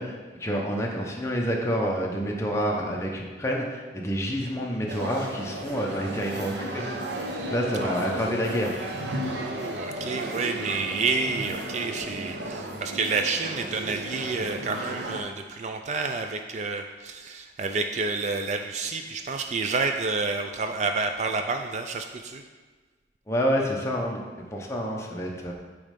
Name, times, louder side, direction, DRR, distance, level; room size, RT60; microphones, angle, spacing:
voice 1, 0.0-6.8 7.5-8.8 23.3-24.2 24.5-25.5, equal, 15° left, -1 dB, 0.8 m, -28 dB
sound 1, 4.9-15.2, right 1 dB, 75° right, 0.9 m, -34 dB
voice 2, 7.8-8.5 9.3-22.4, right 4 dB, 40° right, 6 dB, 0.3 m, -29 dB
8.7 x 3.2 x 5.2 m, 1.4 s
head